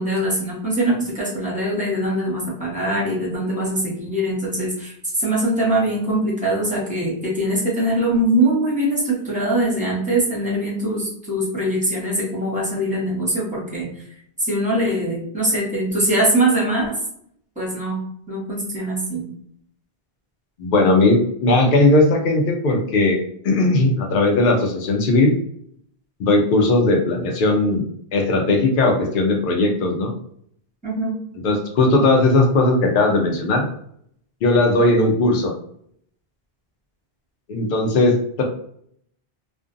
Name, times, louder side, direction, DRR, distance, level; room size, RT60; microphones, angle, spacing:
voice 1, 0.0-13.9 14.4-16.9 17.6-18.0 18.3-19.3 30.8-31.2, right 1 dB, 10° right, -5 dB, 0.9 m, -22 dB
voice 2, 20.6-25.3 26.2-27.8 28.1-30.1 31.4-33.7 34.4-35.5 37.5-38.4, left 2 dB, 60° left, 2 dB, 0.6 m, -18 dB
2.5 x 2.2 x 2.5 m, 0.67 s
omnidirectional pair, 1.0 m